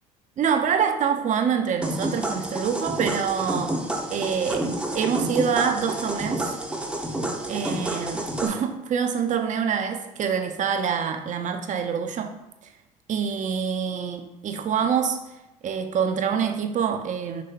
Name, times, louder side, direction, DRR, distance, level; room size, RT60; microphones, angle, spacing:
voice 1, 0.4-3.8 4.1-6.6 7.5-12.3 13.1-15.2 15.6-17.4, right 7 dB, 40° right, 7 dB, 0.6 m, -26 dB
sound 1, 1.8-8.5, right 1 dB, 5° right, 0.7 m, -29 dB
5.2 x 3.1 x 2.8 m, 0.92 s
hypercardioid pair, 70°, 19 cm